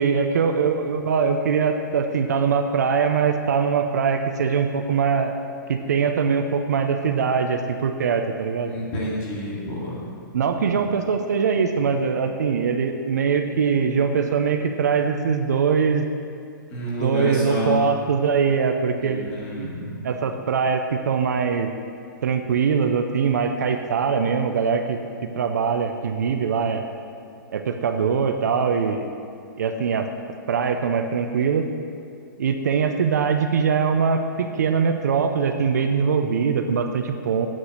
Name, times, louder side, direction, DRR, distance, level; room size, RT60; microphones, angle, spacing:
voice 1, 0.0-5.3 5.7-8.7 10.3-16.1 16.9-19.3 19.5-19.7 20.0-21.7 22.2-25.0 25.4-26.8 27.5-29.1 29.6-30.1 30.5-31.7 32.4-37.5, right 6 dB, 55° right, 6 dB, 0.7 m, -22 dB
voice 2, 8.7-10.1 16.7-17.8 19.0-20.0, equal, 20° left, -5 dB, 1.8 m, -29 dB
8.7 x 6.1 x 8.0 m, 2.4 s
hypercardioid pair, 180°, 11 cm